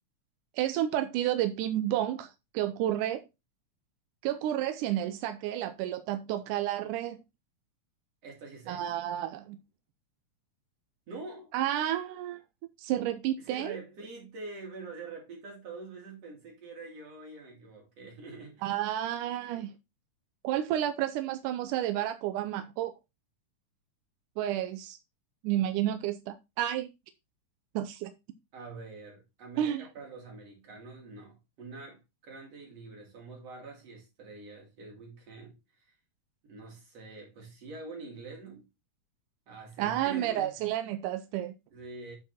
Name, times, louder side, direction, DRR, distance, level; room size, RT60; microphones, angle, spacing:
voice 1, 0.6-2.3 2.5-3.2 4.2-7.2 8.7-9.6 11.5-12.4 12.8-13.8 18.6-19.7 20.4-22.9 24.4-25.0 25.4-26.9 27.8-28.1 29.6-29.9 39.8-41.5, right 12 dB, 90° right, 2.2 m, -31 dB
voice 2, 8.2-8.9 11.1-11.5 13.4-18.7 28.5-35.9 36.5-38.6 39.5-40.5 41.7-42.2, right 3 dB, 55° right, 4.6 m, -45 dB
9.3 x 5.9 x 4.2 m
omnidirectional pair, 3.5 m